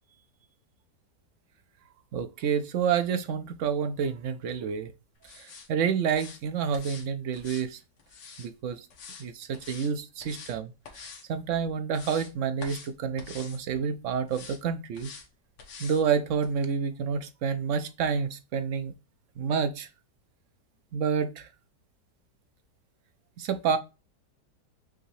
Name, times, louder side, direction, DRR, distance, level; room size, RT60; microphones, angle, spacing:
voice 1, 2.1-4.9 5.3-7.8 8.4-8.9 9.2-15.1 15.8-18.9 19.4-19.9 20.9-21.5 23.4-23.8, right 6 dB, 70° right, 0.7 m, -29 dB
sound 1, 5.2-5.7 6.1-6.4 6.7-7.1 7.3-8.5 8.9-9.3 9.5-9.9 10.2-10.6 10.8-11.2 11.7-12.3 12.6-12.9 13.2-13.6 14.3-14.6 14.9-15.3 15.6-16.0 16.4-16.5, left 5 dB, 80° left, 1.8 m, -46 dB
5.9 x 2.7 x 3.1 m
omnidirectional pair, 1.9 m